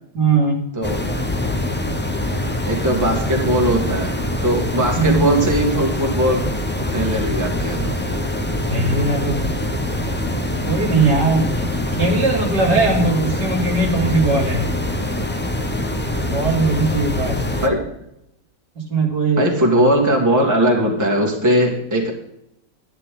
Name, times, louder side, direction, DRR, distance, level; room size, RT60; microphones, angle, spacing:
voice 1, 0.1-0.6 4.9-5.3 8.7-9.6 10.6-14.7 16.2-17.4 18.8-19.5, right 3 dB, 65° right, -1 dB, 3.2 m, -19 dB
sound 1, 0.8-17.7, left 1 dB, 10° left, 0.5 m, -24 dB
voice 2, 2.7-6.5 6.9-7.9 17.6-17.8 19.4-22.1, equal, 10° right, 0 dB, 2.0 m, -19 dB
12.5 x 11.0 x 3.8 m, 0.79 s
omnidirectional pair, 1.9 m